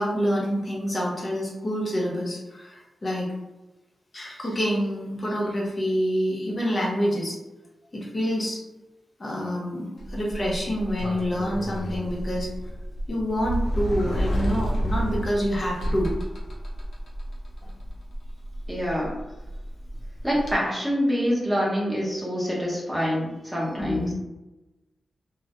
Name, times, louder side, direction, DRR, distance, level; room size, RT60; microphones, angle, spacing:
voice 1, 0.0-3.3 4.1-7.4 7.9-8.6 9.2-12.5 13.1-16.1 17.6-17.7 23.8-24.2, equal, 30° left, -4 dB, 0.7 m, -27 dB
Sliding door, 10.0-20.5, equal, 75° left, 0.5 m, -31 dB
voice 2, 18.7-19.1 20.2-24.2, equal, 5° right, -5 dB, 0.7 m, -26 dB
2.1 x 2.1 x 2.8 m, 1.0 s
wide cardioid pair, 130°, 0 cm